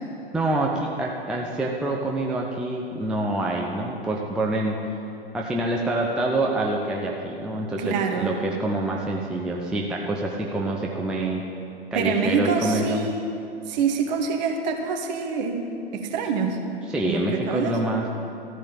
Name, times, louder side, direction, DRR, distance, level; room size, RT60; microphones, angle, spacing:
voice 1, 0.3-4.8 5.3-11.4 11.9-13.1 16.9-18.1, right 2 dB, 5° right, -1 dB, 0.4 m, -26 dB
voice 2, 7.8-8.3 11.9-13.4 13.7-15.6 15.9-16.6 17.0-17.8, right 5 dB, 45° right, 3 dB, 1.4 m, -25 dB
14.0 x 5.1 x 8.4 m, 2.7 s
figure-of-eight pair, 110°, 32 cm